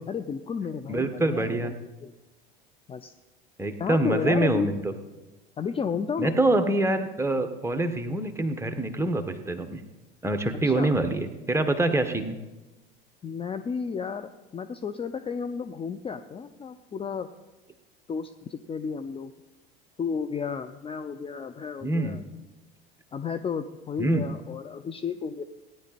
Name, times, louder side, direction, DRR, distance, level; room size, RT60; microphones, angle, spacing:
voice 1, 0.1-2.1 2.9-3.1 3.8-4.7 5.6-6.4 10.6-10.9 13.2-17.3 18.1-19.3 20.0-22.2 23.1-25.4, left 6 dB, 20° left, 8 dB, 0.6 m, -32 dB
voice 2, 0.9-1.7 3.6-4.9 6.2-9.8 10.2-12.3 21.8-22.2 24.0-24.2, right 2 dB, 10° right, 6 dB, 1.4 m, -25 dB
17.5 x 10.0 x 4.3 m, 1.1 s
figure-of-eight pair, 75°, 29 cm